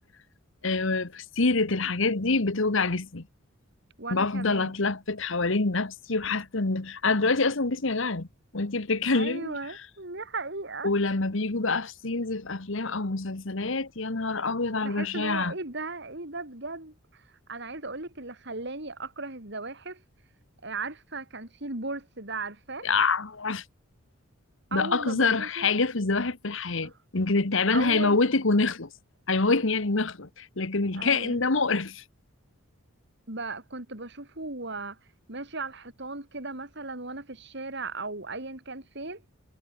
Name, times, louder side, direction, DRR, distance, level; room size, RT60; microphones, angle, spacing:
voice 1, 0.6-3.2 4.1-8.3 8.5-9.6 10.8-15.5 22.8-23.6 24.7-28.9 29.3-32.0, left 3 dB, 65° left, 1.4 m, -26 dB
voice 2, 4.0-4.7 9.1-10.9 14.8-20.0 20.6-22.9 24.7-25.7 26.8-26.9 27.7-28.2 30.9-31.4 33.3-35.0 35.3-39.2, right 3 dB, 55° right, 3.6 m, -37 dB
head